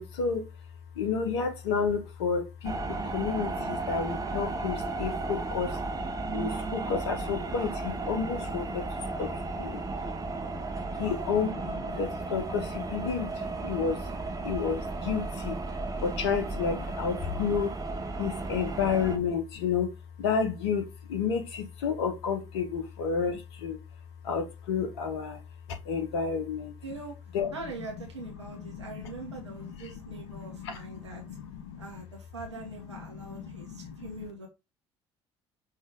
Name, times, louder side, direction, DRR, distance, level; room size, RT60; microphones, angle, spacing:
voice 1, 0.0-10.1 11.0-14.1 14.4-26.8 27.3-32.0 32.5-34.3, left 6 dB, 70° left, 0.8 m, -32 dB
sound 1, 2.6-19.2, right 3 dB, 25° right, 0.9 m, -34 dB
voice 2, 10.9-11.3 26.8-27.2 27.5-31.2 31.8-34.5, right 2 dB, 85° right, 0.9 m, -43 dB
5.4 x 2.8 x 3.6 m
figure-of-eight pair, 50°, 15 cm